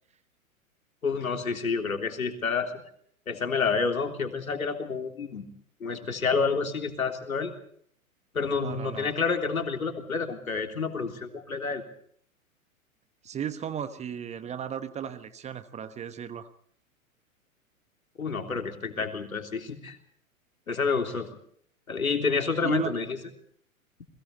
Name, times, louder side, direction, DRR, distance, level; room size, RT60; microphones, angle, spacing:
voice 1, 1.0-2.7 3.3-5.5 5.8-7.5 8.3-11.8 18.2-20.0 20.7-21.3 21.9-23.2, left 5 dB, 75° left, 5 dB, 3.5 m, -29 dB
voice 2, 8.6-9.1 13.2-16.5 22.6-22.9, right 8 dB, 15° right, 13 dB, 1.1 m, -35 dB
29.5 x 21.5 x 4.2 m, 0.62 s
figure-of-eight pair, 105°, 42 cm